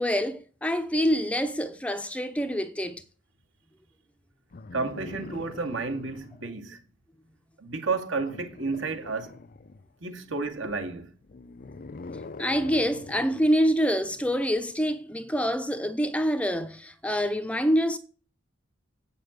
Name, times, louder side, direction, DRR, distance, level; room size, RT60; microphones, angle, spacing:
voice 1, 0.0-3.0 12.4-18.0, equal, 5° left, 0.7 m, -26 dB
sound 1, 4.5-6.5 8.2-9.9 11.2-13.5 14.8-14.9, left 3 dB, 45° left, 0.6 m, -43 dB
voice 2, 4.7-6.8 7.6-9.4 10.0-11.1, right 3 dB, 70° right, 2.2 m, -31 dB
8.4 x 6.9 x 7.9 m
head